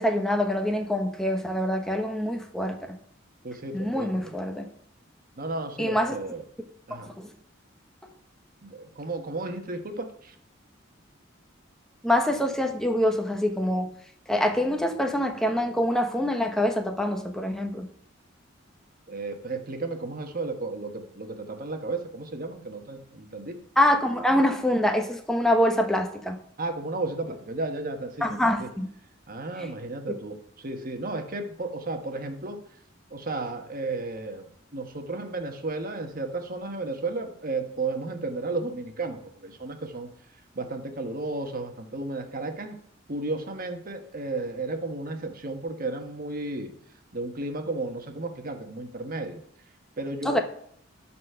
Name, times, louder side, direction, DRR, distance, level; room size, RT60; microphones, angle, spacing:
voice 1, 0.0-3.0 3.7-4.7 5.8-6.2 7.0-7.3 12.0-13.9 14.3-17.9 23.8-26.4 28.2-28.9 29.6-29.7 50.2-50.4, left 1 dB, 5° left, 4 dB, 0.9 m, -25 dB
voice 2, 3.4-4.3 5.4-6.4 6.9-7.1 8.6-10.3 19.1-23.6 26.6-28.7 29.3-32.6 33.1-40.1 40.5-42.8 43.1-46.7 47.1-49.4 50.0-50.4, right 2 dB, 45° right, 5 dB, 1.2 m, -33 dB
12.5 x 4.3 x 5.6 m, 0.65 s
head